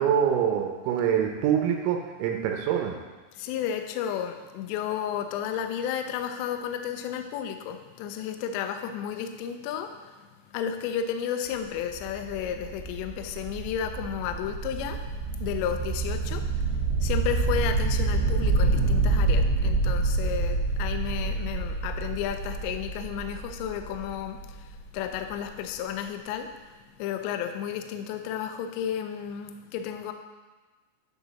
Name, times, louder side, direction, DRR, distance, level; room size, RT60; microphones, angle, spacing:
voice 1, 0.0-3.0, right 8 dB, 90° right, 3 dB, 3.5 m, -25 dB
voice 2, 3.4-9.9 10.5-15.0 15.4-26.5 27.0-30.1, left 9 dB, 85° left, 6 dB, 2.5 m, -32 dB
sound 1, 11.5-25.2, right 3 dB, 65° right, 3.7 m, -27 dB
10.0 x 5.9 x 4.1 m, 1.3 s
omnidirectional pair, 5.8 m